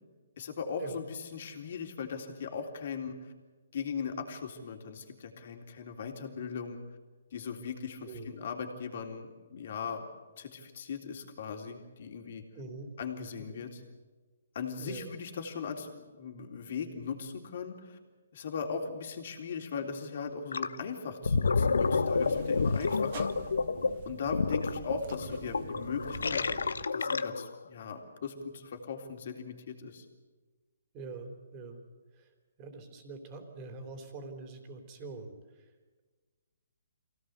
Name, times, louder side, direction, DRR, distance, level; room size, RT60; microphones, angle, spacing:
voice 1, 0.4-3.3 3.7-6.8 7.3-10.1 10.4-12.4 13.0-13.8 14.6-18.0 18.3-23.3 24.1-26.5 26.9-30.1, left 6 dB, 50° left, 4 dB, 3.6 m, -38 dB
voice 2, 8.0-8.4 12.5-12.9 13.4-13.6 14.8-15.1 30.9-31.8 32.1-32.3 32.6-35.7, right 3 dB, 25° right, 6 dB, 3.6 m, -44 dB
Gurgling, 20.5-20.8 21.1-27.6, left 4 dB, 90° left, 1.0 m, -29 dB
sound 1, 21.8-26.9, right 9 dB, 45° right, 0.9 m, -47 dB
24.5 x 17.5 x 8.2 m, 1.3 s
hypercardioid pair, 160°, 0 cm